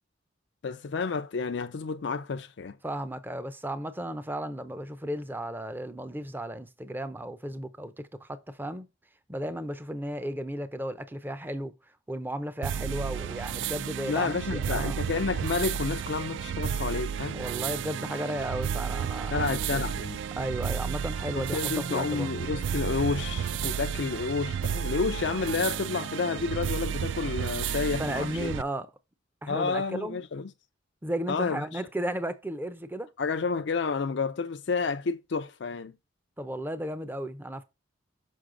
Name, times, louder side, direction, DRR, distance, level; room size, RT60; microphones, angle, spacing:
voice 1, 0.6-2.8 14.1-17.4 19.3-20.2 21.4-28.5 29.5-30.5 31.3-31.8 33.2-35.9, left 4 dB, 65° left, 0.4 m, -30 dB
voice 2, 2.8-8.9 9.3-11.7 12.1-15.0 17.3-19.9 20.4-22.3 27.9-28.9 29.4-30.2 31.0-33.1 36.4-37.6, right 1 dB, 10° right, 0.5 m, -34 dB
sound 1, 12.6-28.6, right 8 dB, 70° right, 0.3 m, -32 dB
6.3 x 5.4 x 3.7 m
head